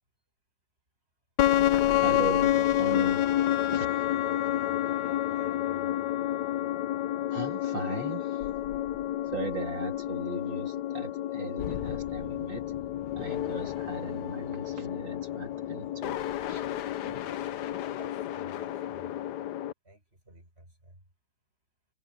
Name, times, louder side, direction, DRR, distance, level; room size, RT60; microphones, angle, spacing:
sound 1, 1.4-19.7, left 12 dB, 70° left, 1.2 m, -29 dB
voice 1, 2.0-4.4 7.3-8.5 9.2-12.7 13.2-16.2 16.5-16.7, right 3 dB, 80° right, 3.9 m, -39 dB
voice 2, 4.1-6.0 17.1-17.5 18.0-19.1 19.8-21.0, right 1 dB, 30° right, 7.1 m, -52 dB
omnidirectional pair, 2.0 m